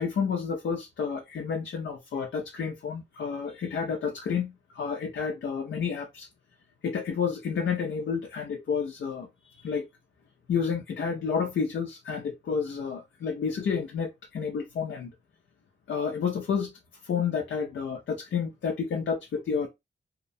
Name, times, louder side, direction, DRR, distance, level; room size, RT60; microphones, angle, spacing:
voice 1, 0.0-6.3 6.8-9.9 10.5-15.1 15.9-16.7 17.0-19.7, left 6 dB, 70° left, 0.5 m, -30 dB
2.7 x 2.0 x 2.6 m
cardioid pair, 55°, 20 cm